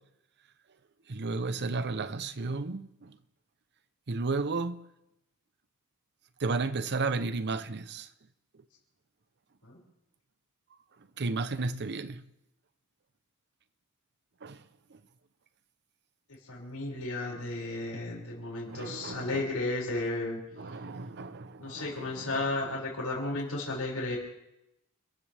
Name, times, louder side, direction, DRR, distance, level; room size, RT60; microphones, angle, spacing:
voice 1, 1.1-3.2 4.1-4.8 6.4-8.1 11.2-12.2 14.4-14.6 14.9-15.0 18.7-19.4 20.6-22.4, right 3 dB, 50° right, 0.8 m, -33 dB
voice 2, 16.4-20.4 21.6-24.2, left 2 dB, 75° left, 6.0 m, -33 dB
29.0 x 13.5 x 3.5 m
head